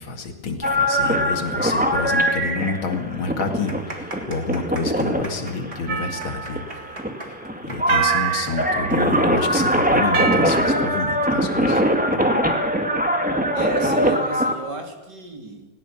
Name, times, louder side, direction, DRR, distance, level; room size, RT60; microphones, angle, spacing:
voice 1, 0.0-6.6 7.2-7.4 7.6-11.8, left 4 dB, 85° left, 6 dB, 3.0 m, -29 dB
sound 1, 0.6-14.5, equal, 5° right, 1.8 m, -22 dB
sound 2, 3.3-10.6 10.9-11.0 11.7-12.0, right 2 dB, 30° right, 3.4 m, -39 dB
sound 3, 5.9-7.2 7.9-9.4 10.1-11.6, right 7 dB, 80° right, 2.1 m, -27 dB
voice 2, 13.5-15.7, right 3 dB, 60° right, 4 dB, 3.4 m, -32 dB
20.0 x 19.5 x 7.1 m, 1.1 s
omnidirectional pair, 2.2 m